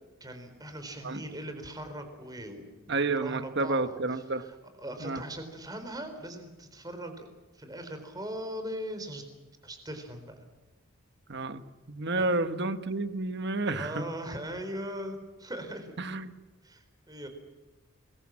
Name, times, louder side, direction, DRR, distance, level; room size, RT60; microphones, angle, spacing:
voice 1, 0.2-4.0 4.8-7.3 7.5-9.2 9.6-10.4 12.2-12.4 13.7-15.9 16.6-17.3, equal, 15° right, 7 dB, 4.1 m, -40 dB
voice 2, 2.9-4.5 5.0-5.2 11.3-11.6 11.9-14.0 16.0-16.3, right 3 dB, 50° right, 10 dB, 1.3 m, -30 dB
25.5 x 21.5 x 7.6 m, 1.2 s
head